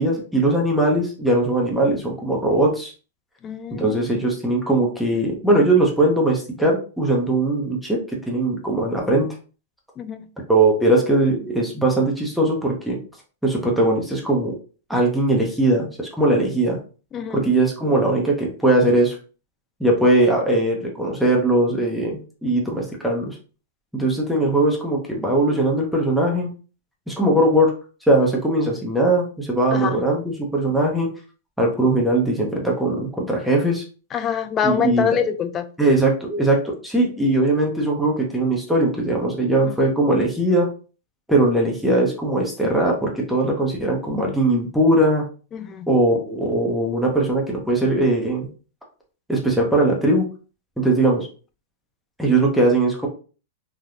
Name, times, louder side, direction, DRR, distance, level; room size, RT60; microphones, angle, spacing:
voice 1, 0.0-2.9 3.7-9.3 10.5-13.0 13.4-14.5 14.9-16.8 17.3-19.2 19.8-23.4 23.9-26.5 27.1-27.7 28.1-31.1 31.6-33.8 34.6-35.2 35.8-40.7 41.3-45.3 45.9-48.5 49.3-50.2 50.8-51.3 52.2-53.1, right 1 dB, ahead, 0.8 m, -20 dB
voice 2, 3.4-4.1 10.0-10.3 17.1-17.4 29.7-30.0 34.1-35.7 39.6-39.8 45.5-45.9, left 7 dB, 25° left, 0.4 m, -25 dB
3.4 x 2.2 x 2.6 m
hypercardioid pair, 130°, 0 cm